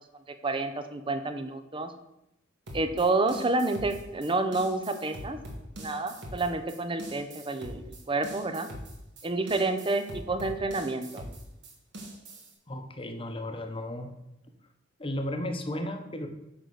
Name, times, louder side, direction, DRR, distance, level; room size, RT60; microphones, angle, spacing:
voice 1, 0.4-1.9 2.7-5.4 5.8-8.7 9.2-11.2, right 2 dB, 25° right, 9 dB, 0.7 m, -29 dB
sound 1, 2.7-12.5, right 1 dB, 65° right, 2.1 m, -43 dB
voice 2, 12.7-14.1 15.0-16.3, left 1 dB, 30° left, 5 dB, 1.0 m, -34 dB
9.5 x 4.0 x 6.5 m, 0.86 s
head